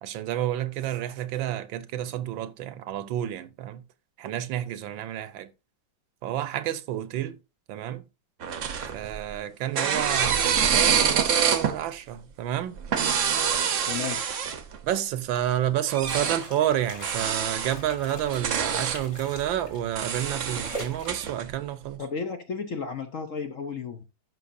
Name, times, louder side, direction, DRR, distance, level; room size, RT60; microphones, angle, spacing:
voice 1, 0.0-3.8 4.2-5.5 6.2-7.4 7.7-8.1 8.9-12.8 14.8-22.0, right 11 dB, 75° right, 1.4 m, -30 dB
sound 1, 8.4-9.3 9.8-11.8 12.8-14.8 15.9-16.4 17.0-17.7 18.2-19.0 19.9-21.4, right 7 dB, 55° right, 0.9 m, -26 dB
voice 2, 13.9-14.2 22.0-24.0, left 5 dB, 55° left, 0.9 m, -33 dB
sound 2, 16.0-21.1, equal, 35° left, 2.4 m, -42 dB
12.5 x 5.6 x 2.6 m
omnidirectional pair, 2.1 m